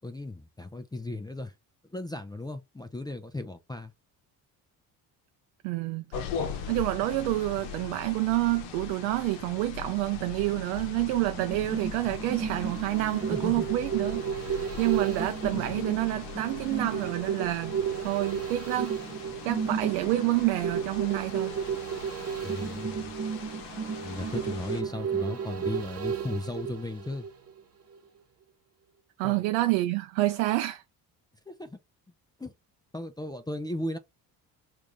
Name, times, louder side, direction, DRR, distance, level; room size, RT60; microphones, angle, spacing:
voice 1, 0.0-1.5 1.9-3.9 13.3-13.7 14.5-14.8 22.4-23.1 24.0-27.3 29.2-29.4 31.5-31.8 32.4-32.5 32.9-34.0, left 2 dB, 10° left, 0.5 m, -36 dB
voice 2, 5.6-6.0 6.7-19.0 19.4-21.5 29.2-30.8, right 17 dB, 80° right, 0.5 m, -28 dB
sound 1, 6.1-24.8, left 7 dB, 80° left, 0.8 m, -41 dB
sound 2, 11.4-27.6 28.0-28.1, right 7 dB, 30° right, 1.0 m, -33 dB
3.5 x 2.6 x 3.1 m
hypercardioid pair, 60°, 48 cm